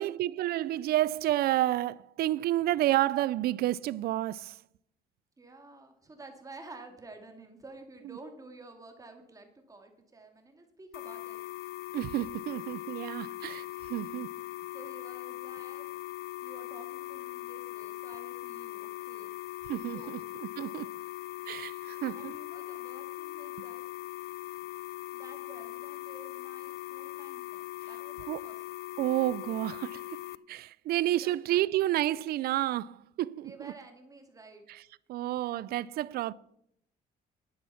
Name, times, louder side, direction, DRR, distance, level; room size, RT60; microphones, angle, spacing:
voice 1, 0.0-4.6 11.9-14.3 19.7-20.9 21.5-22.4 28.3-28.4 29.0-30.2 30.5-33.7 34.7-34.8 35.1-36.3, right 14 dB, 65° right, 0.5 m, -30 dB
voice 2, 5.4-11.4 14.7-15.9 16.4-19.3 19.7-20.2 22.1-23.8 25.1-28.6 31.1-31.7 33.4-34.6, right 3 dB, 20° right, 2.5 m, -51 dB
sound 1, 10.9-30.4, left 17 dB, 70° left, 0.4 m, -40 dB
11.0 x 10.0 x 5.7 m
cardioid pair, 110°, 17 cm